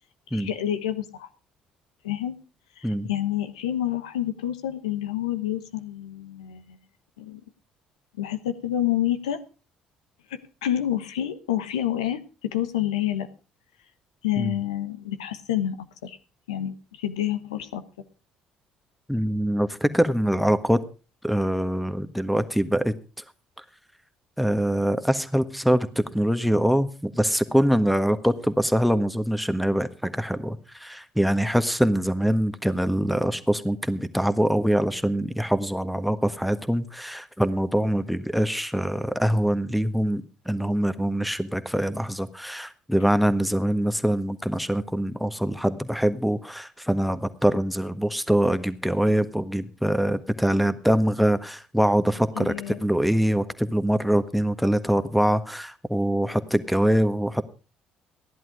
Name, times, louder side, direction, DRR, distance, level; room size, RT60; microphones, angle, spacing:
voice 1, 0.3-1.3 2.0-2.4 2.8-6.8 7.2-7.4 8.2-9.4 10.3-13.3 14.2-16.2 16.5-17.8 52.4-52.8, left 11 dB, 90° left, 9 dB, 1.2 m, -28 dB
voice 2, 19.1-20.8 21.2-22.9 24.4-57.4, equal, ahead, 10 dB, 1.5 m, -24 dB
15.5 x 11.0 x 4.9 m, 0.34 s
hypercardioid pair, 55°, 3 cm